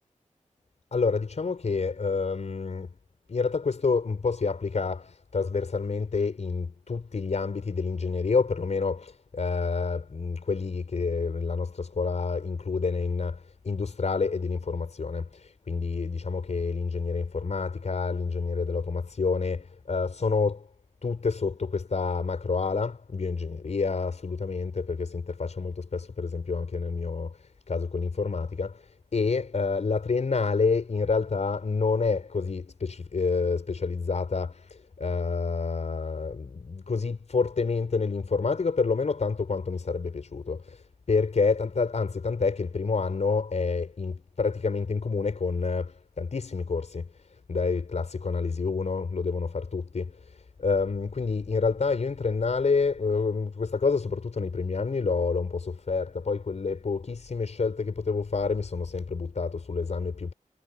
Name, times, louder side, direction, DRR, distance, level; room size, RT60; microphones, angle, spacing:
voice 1, 0.9-2.9 3.3-20.7 21.0-60.3, left 4 dB, 60° left, 5.0 m, -28 dB
wide cardioid pair, 125°, 13 cm